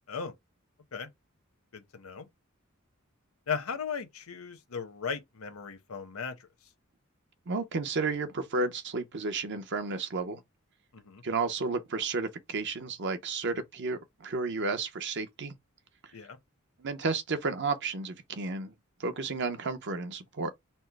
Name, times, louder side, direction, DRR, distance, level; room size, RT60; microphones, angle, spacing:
voice 1, 1.7-2.3 3.5-6.5 10.9-11.2 16.1-16.4, left 6 dB, 70° left, 0.9 m, -37 dB
voice 2, 7.5-10.4 11.2-15.5 16.8-18.7 19.0-20.5, right 3 dB, 55° right, 0.7 m, -32 dB
4.3 x 2.0 x 4.4 m
head